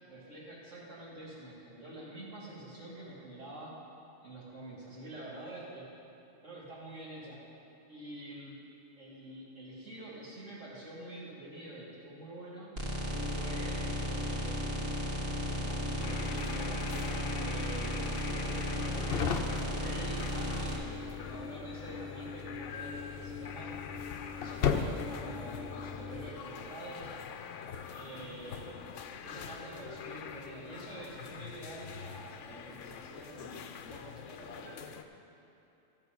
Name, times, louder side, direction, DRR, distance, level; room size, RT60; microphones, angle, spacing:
voice 1, 0.0-3.7 4.2-5.9 6.4-7.4 7.9-8.6 9.0-12.7 13.3-14.9 15.4-18.9 19.5-23.7 24.4-27.1 27.9-28.7 29.2-35.0, right 1 dB, 85° right, -7 dB, 3.1 m, -47 dB
sound 1, 12.8-20.8, right 1 dB, 55° right, 1.8 m, -35 dB
sound 2, 13.1-26.3, left 6 dB, 60° left, 0.8 m, -38 dB
sound 3, 16.0-35.0, left 7 dB, 85° left, 1.0 m, -45 dB
13.0 x 7.4 x 5.3 m, 3.0 s
omnidirectional pair, 1.2 m